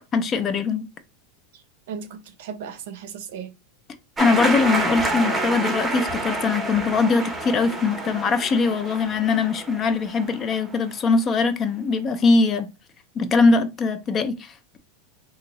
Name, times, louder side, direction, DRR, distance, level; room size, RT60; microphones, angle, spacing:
voice 1, 0.1-0.9 4.2-12.7 13.2-14.8, left 4 dB, 25° left, 0.4 m, -21 dB
voice 2, 1.5-3.5, right 7 dB, 70° right, 0.6 m, -36 dB
sound 1, 4.2-10.8, right 2 dB, 10° right, 0.7 m, -28 dB
3.7 x 2.6 x 3.0 m
supercardioid pair, 155°, 0 cm